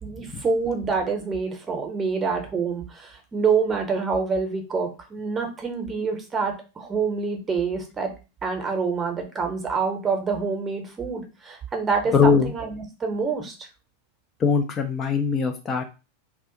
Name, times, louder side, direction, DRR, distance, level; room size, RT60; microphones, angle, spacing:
voice 1, 0.0-8.1 8.4-13.7, right 5 dB, 20° right, 4 dB, 0.8 m, -26 dB
voice 2, 12.1-12.5 14.4-15.8, left 5 dB, 25° left, 4 dB, 0.4 m, -21 dB
2.4 x 2.2 x 3.7 m, 0.31 s
figure-of-eight pair, 90°, 0 cm